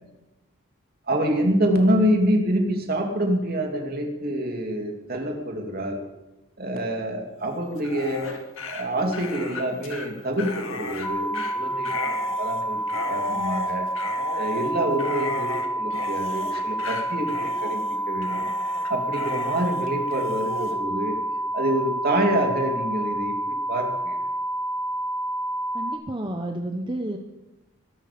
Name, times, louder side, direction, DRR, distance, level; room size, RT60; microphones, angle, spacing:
voice 1, 1.1-6.0 6.6-8.3 8.7-12.8 13.1-13.9 14.3-18.5 18.9-21.2 21.5-24.2, right 1 dB, 45° right, 2 dB, 2.9 m, -26 dB
Dog, 7.7-20.7, left 3 dB, 75° left, 2.2 m, -35 dB
sound 1, 11.0-26.0, right 1 dB, 10° left, 2.0 m, -28 dB
voice 2, 25.7-27.2, right 1 dB, 20° right, 4 dB, 1.0 m, -30 dB
21.0 x 12.0 x 5.3 m, 1.0 s
head